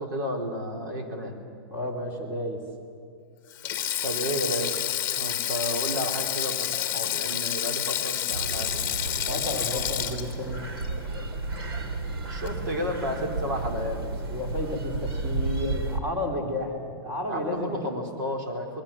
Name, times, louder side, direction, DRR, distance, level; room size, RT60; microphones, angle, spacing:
voice 1, 0.0-1.3 4.0-4.8 5.2-8.8 12.1-14.0 17.3-18.8, equal, 55° right, 3 dB, 4.4 m, -32 dB
voice 2, 1.7-2.6 9.3-10.6 14.3-18.0, left 2 dB, 15° right, 1 dB, 3.7 m, -32 dB
Sink (filling or washing), 3.5-12.0 12.2-12.5 13.7-13.9, left 11 dB, 20° left, 1.7 m, -30 dB
sound 1, 8.3-16.0, right 3 dB, 75° right, 2.9 m, -32 dB
27.5 x 21.0 x 7.5 m, 2.4 s
supercardioid pair, 170°, 13 cm